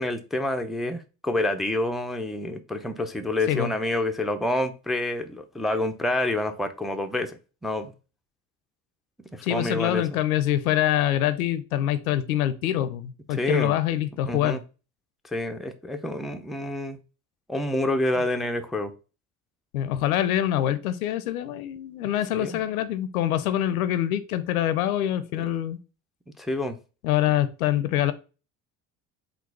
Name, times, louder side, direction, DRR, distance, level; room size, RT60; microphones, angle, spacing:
voice 1, 0.0-7.9 9.3-10.1 13.3-13.8 14.3-14.6 15.2-17.0 17.5-18.9 22.3-22.6 25.4-25.5 26.4-26.8, left 1 dB, ahead, 0.4 m, -28 dB
voice 2, 9.4-14.6 19.7-25.8 27.0-28.1, left 12 dB, 80° left, 0.6 m, -25 dB
3.8 x 2.3 x 4.6 m
hypercardioid pair, 65°, 42 cm